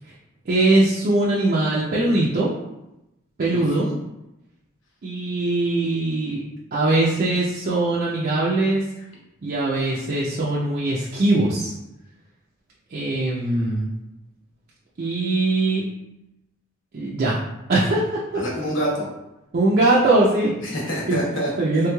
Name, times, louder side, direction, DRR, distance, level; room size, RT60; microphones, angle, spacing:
voice 1, 0.5-2.5 3.4-3.9 5.0-6.4 6.7-8.8 9.4-11.7 12.9-13.9 15.0-15.8 16.9-17.4 17.7-18.4 19.5-20.5 21.1-21.2 21.6-21.9, right 2 dB, 45° right, -5 dB, 0.4 m, -21 dB
voice 2, 3.5-4.0 18.3-19.1 20.6-21.9, equal, 70° left, -4 dB, 1.0 m, -27 dB
3.2 x 3.1 x 2.2 m, 0.92 s
head